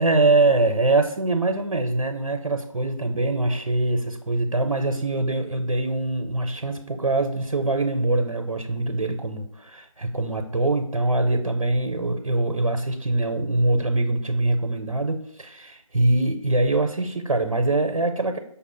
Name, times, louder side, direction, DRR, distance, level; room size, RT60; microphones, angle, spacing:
voice 1, 0.0-18.4, right 2 dB, 75° right, 5 dB, 0.5 m, -23 dB
5.4 x 2.1 x 4.2 m, 0.71 s
figure-of-eight pair, 160°, 18 cm